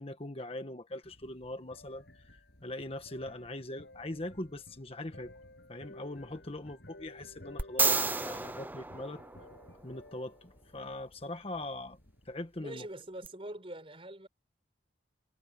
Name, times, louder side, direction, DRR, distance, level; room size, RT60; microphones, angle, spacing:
voice 1, 0.0-2.4 2.6-5.3 5.7-9.2 9.8-12.0 12.2-12.9, left 1 dB, 35° left, 1.4 m, -41 dB
sound 1, 1.0-12.6, left 1 dB, 80° left, 8.0 m, -55 dB
sound 2, 7.6-9.8 13.2-13.3, right 3 dB, 10° right, 0.8 m, -31 dB
voice 2, 12.6-14.3, right 1 dB, 30° right, 5.7 m, -43 dB
head